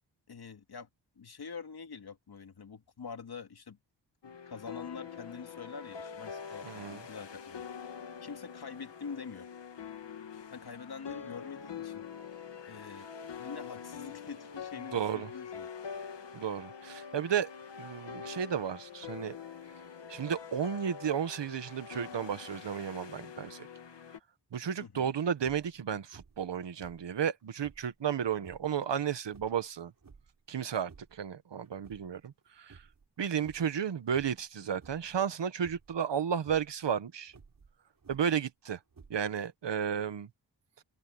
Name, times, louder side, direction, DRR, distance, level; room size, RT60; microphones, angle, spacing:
voice 1, 0.3-0.9 1.2-3.8 4.2-7.7 8.2-9.5 10.5-13.1 13.4-15.7 24.8-25.1, left 5 dB, 65° left, 2.5 m, -45 dB
sound 1, 4.2-24.2, left 7 dB, 85° left, 2.3 m, -45 dB
voice 2, 6.6-7.0 14.9-15.3 16.3-17.5 17.8-19.4 20.1-23.7 24.5-29.9 30.5-32.8 33.2-37.3 38.1-38.8 39.1-40.3, right 8 dB, 80° right, 1.4 m, -33 dB
sound 2, 25.4-25.8 26.1-26.5 26.8-27.9 28.4-28.7 29.3-30.4 30.7-31.3 31.6-32.4 32.7-33.1 33.4-33.8 34.1-34.5 34.8-35.2 35.6-36.0 36.4-36.7 37.3-38.4 38.9-39.5, right 5 dB, 50° right, 4.0 m, -56 dB
open air
wide cardioid pair, 155°, 42 cm